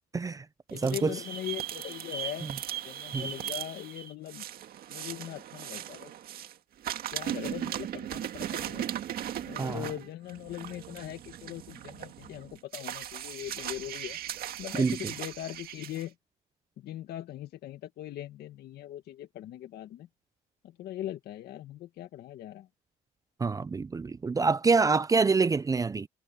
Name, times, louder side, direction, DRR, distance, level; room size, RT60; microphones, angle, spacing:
voice 1, 0.1-0.4 0.7-1.1 3.1-3.3 9.6-9.8 14.7-15.0 23.4-26.1, right 4 dB, 20° right, 0.5 m, -26 dB
voice 2, 0.7-2.5 2.8-4.4 4.9-6.1 7.1-8.9 9.4-14.2 14.6-16.1 16.8-20.1 20.6-22.7, left 13 dB, 70° left, 1.9 m, -40 dB
sound 1, 0.7-6.5 6.8-16.0, right 11 dB, 60° right, 2.0 m, -38 dB
cardioid pair, 110°, 17 cm